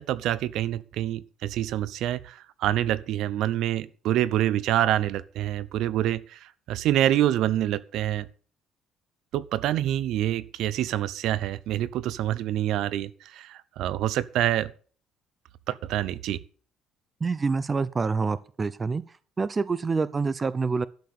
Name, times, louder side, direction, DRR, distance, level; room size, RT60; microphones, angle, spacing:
voice 1, 0.0-8.3 9.3-14.7 15.7-16.4, right 12 dB, 70° right, 0.8 m, -26 dB
voice 2, 17.2-19.0 19.4-20.9, right 4 dB, 20° right, 0.6 m, -26 dB
12.0 x 6.7 x 8.4 m
cardioid pair, 150°, 0 cm